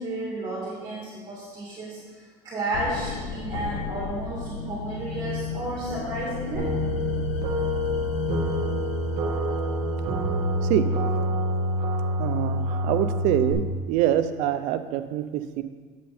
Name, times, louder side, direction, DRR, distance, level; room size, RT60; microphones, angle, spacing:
voice 1, 0.0-6.7, right 1 dB, 25° right, -6 dB, 2.6 m, -32 dB
sound 1, 2.7-11.6, left 4 dB, 50° left, 1.0 m, -34 dB
sound 2, 6.5-13.5, equal, 40° right, 1.5 m, -27 dB
voice 2, 12.2-13.6 13.9-15.6, right 12 dB, 65° right, 10 dB, 0.6 m, -25 dB
8.5 x 7.5 x 4.3 m, 1.5 s
cardioid pair, 135°, 13 cm